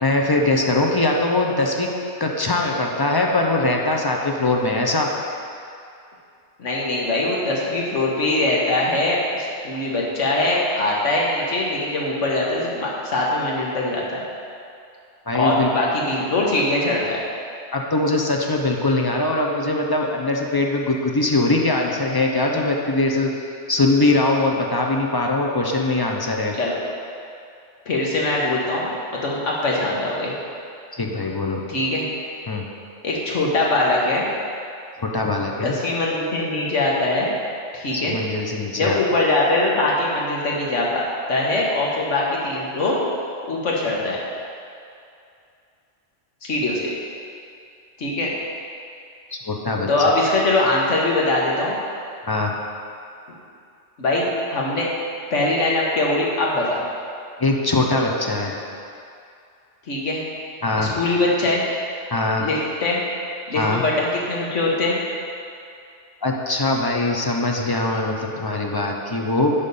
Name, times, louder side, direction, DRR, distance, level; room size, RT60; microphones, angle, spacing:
voice 1, 0.0-1.9 2.2-5.1 15.3-15.7 17.7-23.3 23.7-26.5 30.9-31.6 32.5-32.6 35.0-35.7 37.9-39.0 49.3-49.9 52.3-52.5 57.4-58.5 60.6-60.9 62.1-62.5 63.5-63.8 66.2-69.5, left 2 dB, 30° left, 0 dB, 0.4 m, -21 dB
voice 2, 6.6-14.2 15.3-17.2 26.5-26.7 27.9-30.3 31.7-32.0 33.0-34.3 35.6-37.3 37.7-38.2 38.8-43.0 43.5-44.2 46.4-46.9 48.0-48.3 49.9-51.7 54.0-54.9 55.3-56.8 59.9-60.2 60.8-61.6 62.4-63.0 63.5-65.0, left 2 dB, 85° left, -3 dB, 1.6 m, -22 dB
10.5 x 3.7 x 5.4 m, 2.5 s
omnidirectional pair, 1.2 m